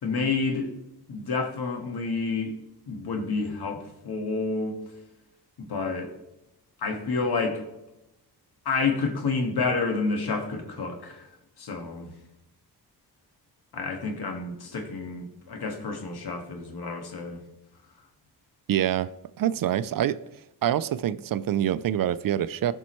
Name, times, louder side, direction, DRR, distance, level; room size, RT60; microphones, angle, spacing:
voice 1, 0.0-0.7 1.1-2.5 2.9-4.8 5.6-6.1 6.8-7.6 8.6-11.3 11.6-12.1 13.7-17.4, left 4 dB, 65° left, 1.7 m, -29 dB
voice 2, 18.7-19.1 19.4-20.2 20.6-22.7, right 11 dB, 55° right, 0.5 m, -25 dB
15.0 x 5.4 x 3.1 m
cardioid pair, 70°, 41 cm